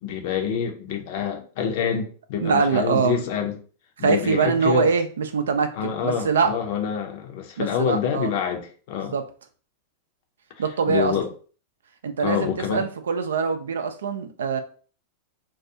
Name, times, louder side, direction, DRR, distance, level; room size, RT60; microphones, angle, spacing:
voice 1, 0.0-3.5 4.0-4.9 5.7-9.1 10.9-11.3 12.2-12.9, left 7 dB, 60° left, 0.6 m, -26 dB
voice 2, 2.4-3.2 4.0-6.5 7.6-8.3 9.0-9.2 10.6-11.2 12.0-14.6, right 5 dB, 80° right, 0.4 m, -23 dB
2.4 x 2.3 x 2.7 m
hypercardioid pair, 95°, 0 cm